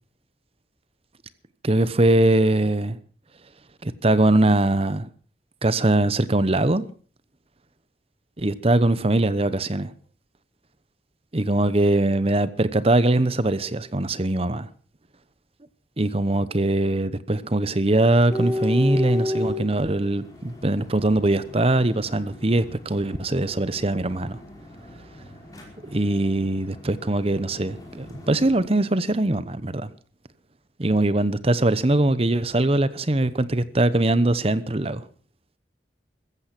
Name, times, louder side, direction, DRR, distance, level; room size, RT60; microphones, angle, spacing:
voice 1, 1.6-3.0 3.8-5.1 5.6-6.8 8.4-9.9 11.3-14.7 16.0-24.4 25.8-29.9 30.8-35.0, right 2 dB, 35° right, 1.0 m, -22 dB
sound 1, 18.3-28.6, left 1 dB, 20° left, 5.3 m, -34 dB
15.0 x 14.5 x 6.0 m
head